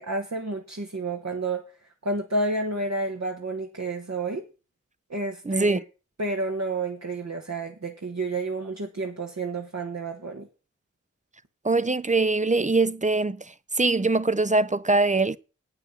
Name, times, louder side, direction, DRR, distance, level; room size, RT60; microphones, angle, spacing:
voice 1, 0.0-1.6 2.0-4.4 5.1-5.8 6.2-10.5, right 2 dB, 55° right, 1.6 m, -30 dB
voice 2, 5.5-5.8 11.6-15.4, right 3 dB, 25° right, 0.7 m, -23 dB
9.0 x 6.6 x 8.0 m
wide cardioid pair, 45°, 31 cm